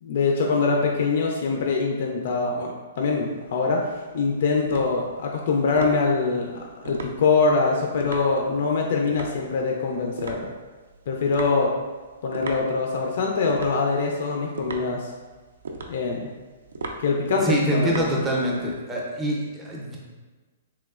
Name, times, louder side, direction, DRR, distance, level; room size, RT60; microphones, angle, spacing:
voice 1, 0.0-3.9 4.1-10.5 11.1-11.7 12.2-15.1 15.9-16.3 17.0-18.1, left 4 dB, 55° left, 0 dB, 0.4 m, -24 dB
sound 1, 3.2-18.8, right 3 dB, 85° right, 0.4 m, -38 dB
voice 2, 17.4-20.0, right 1 dB, 10° right, -3 dB, 0.5 m, -25 dB
3.5 x 3.0 x 2.3 m, 1.3 s
hypercardioid pair, 165°, 0 cm